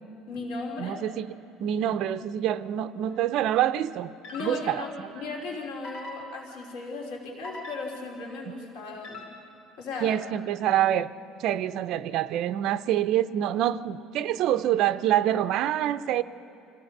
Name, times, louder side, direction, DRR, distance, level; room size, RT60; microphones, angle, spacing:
voice 1, 0.3-1.0 4.3-9.2 9.8-10.2, left 3 dB, 85° left, 0 dB, 3.0 m, -36 dB
voice 2, 0.8-1.3 1.6-4.1 4.4-4.8 10.0-11.1 11.4-16.2, right 11 dB, 55° right, 12 dB, 0.5 m, -26 dB
sound 1, 3.1-3.4 4.2-5.0 5.8-6.7 7.4-8.3 9.0-9.7, left 1 dB, 65° left, 3.7 m, -43 dB
26.5 x 15.5 x 6.6 m, 2.7 s
cardioid pair, 160°, 0 cm